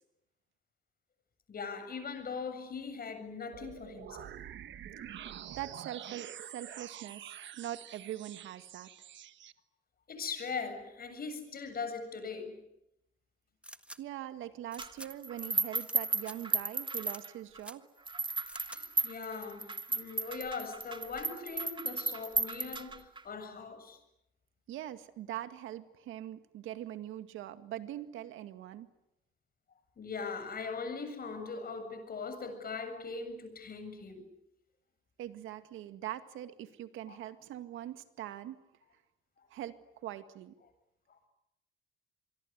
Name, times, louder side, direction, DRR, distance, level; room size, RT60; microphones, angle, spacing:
voice 1, 1.5-4.4 10.1-12.6 18.6-24.0 30.0-34.3 37.1-37.2 41.1-41.3, left 4 dB, 50° left, 7.4 m, -40 dB
sound 1, 3.5-9.5, right 10 dB, 70° right, 1.4 m, -47 dB
voice 2, 5.1-8.9 14.0-17.9 24.7-28.9 35.2-38.6 39.5-39.8 40.0-40.5, right 12 dB, 90° right, 2.0 m, -42 dB
sound 2, 13.6-14.0 14.7-15.1 15.8-15.9 16.2-16.4 17.0-17.2 17.6-17.8 18.5-18.8, right 1 dB, 5° right, 1.6 m, -47 dB
sound 3, 14.8-17.6 18.1-23.2, right 3 dB, 25° right, 2.2 m, -35 dB
26.0 x 23.0 x 9.7 m
cardioid pair, 90°, 20 cm